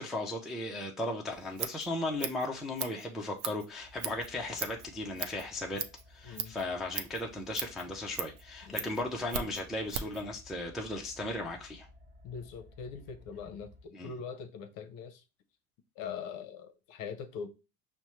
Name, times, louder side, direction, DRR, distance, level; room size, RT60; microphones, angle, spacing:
voice 1, 0.0-5.8 6.1-11.9 13.9-14.1, left 2 dB, ahead, 0.4 m, -36 dB
Scissors, 1.3-10.2, right 9 dB, 50° right, 0.6 m, -40 dB
sound 1, 3.8-13.9, left 2 dB, 25° right, 0.9 m, -57 dB
voice 2, 6.2-6.6 8.7-9.0 12.2-15.2 16.0-17.5, left 6 dB, 50° left, 0.7 m, -42 dB
5.3 x 2.1 x 3.0 m
hypercardioid pair, 95°, 44 cm